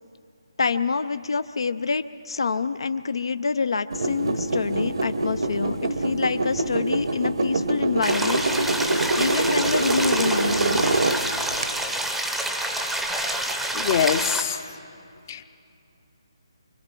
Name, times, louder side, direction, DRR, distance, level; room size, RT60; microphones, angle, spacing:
voice 1, 0.6-8.6 9.1-10.8, left 5 dB, 70° left, 11 dB, 0.5 m, -26 dB
sound 1, 3.9-11.6, right 2 dB, 70° right, 1.1 m, -25 dB
sound 2, 8.0-14.4, right 1 dB, ahead, 0.7 m, -27 dB
voice 2, 13.7-14.6 15.3-15.4, left 8 dB, 35° left, 10 dB, 0.7 m, -23 dB
25.0 x 25.0 x 4.5 m, 2.5 s
hypercardioid pair, 160°, 3 cm